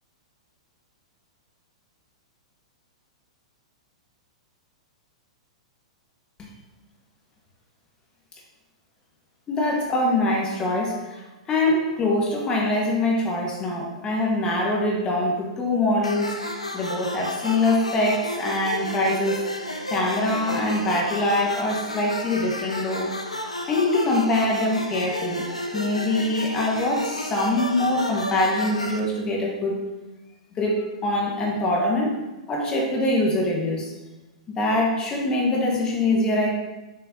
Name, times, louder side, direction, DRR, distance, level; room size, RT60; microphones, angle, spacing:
voice 1, 9.5-11.2 11.5-19.4 19.9-23.2 23.7-29.8 30.6-32.2 32.5-33.9 34.5-36.5, left 1 dB, 25° left, -2 dB, 1.7 m, -24 dB
sound 1, 16.0-29.0, left 1 dB, 90° left, 0.8 m, -32 dB
7.4 x 6.3 x 3.0 m, 1.1 s
figure-of-eight pair, 105°, 3 cm